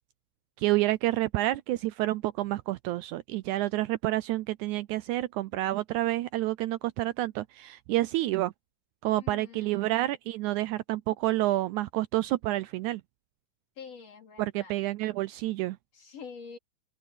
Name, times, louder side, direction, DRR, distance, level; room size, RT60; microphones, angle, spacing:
voice 1, 0.6-8.5 9.0-13.0 14.4-15.8, right 16 dB, 80° right, 1.8 m, -29 dB
voice 2, 9.2-10.0 13.8-14.7 15.9-16.6, left 6 dB, 50° left, 4.9 m, -46 dB
open air
omnidirectional pair, 3.7 m